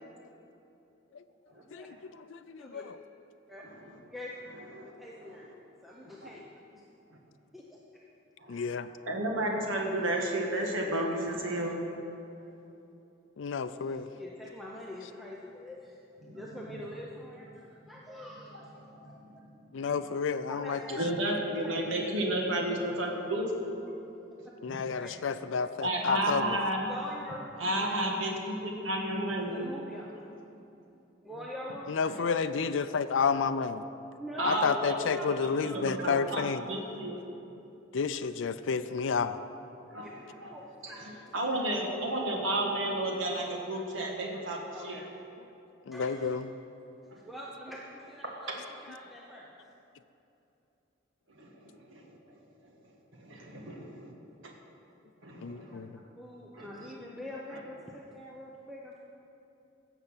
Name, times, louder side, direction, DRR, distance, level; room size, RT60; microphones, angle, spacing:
voice 1, 1.5-1.9 2.6-2.8 3.5-3.6 4.1-4.6 4.9-5.5 5.8-6.5 6.7-6.8 7.5-7.8 13.8-17.5 17.9-19.1 20.1-20.2 20.5-21.4 21.6-21.8 22.1-22.2 25.0-25.1 26.8-28.1 29.5-30.2 31.2-32.4 34.2-36.0 36.9-37.2 40.0-40.1 40.5-41.2 44.7-45.1 45.9-46.4 47.2-48.6 48.8-49.5 55.6-55.8 56.2-59.0, equal, ahead, -4 dB, 0.8 m, -44 dB
voice 2, 2.3-3.0 8.5-8.9 13.4-14.1 19.7-20.8 24.6-26.6 31.9-33.8 34.4-36.6 37.9-39.4 45.9-46.5 55.4-56.0, left 5 dB, 75° left, 10 dB, 0.4 m, -30 dB
voice 3, 8.4-11.8 16.2-16.4 18.9-19.2 21.0-23.7 24.7-24.8 25.8-26.9 27.6-29.7 34.4-37.2 39.9-40.1 40.4-40.5 40.8-40.9 41.3-45.0 47.1-47.2 51.4-52.0 53.1-54.1 54.4-54.5 55.2-55.9 56.5-56.7, right 1 dB, 80° right, 0 dB, 1.6 m, -32 dB
16.0 x 7.0 x 5.7 m, 2.9 s
head